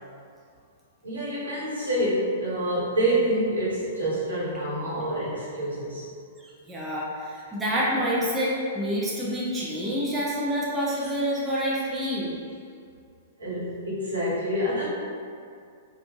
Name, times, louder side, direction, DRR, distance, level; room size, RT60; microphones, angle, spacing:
voice 1, 1.0-6.1 13.4-14.8, right 1 dB, 75° right, -9 dB, 1.1 m, -27 dB
voice 2, 6.4-12.3, equal, 10° right, -7 dB, 0.5 m, -27 dB
3.6 x 2.3 x 2.4 m, 2.3 s
figure-of-eight pair, 105°, 0 cm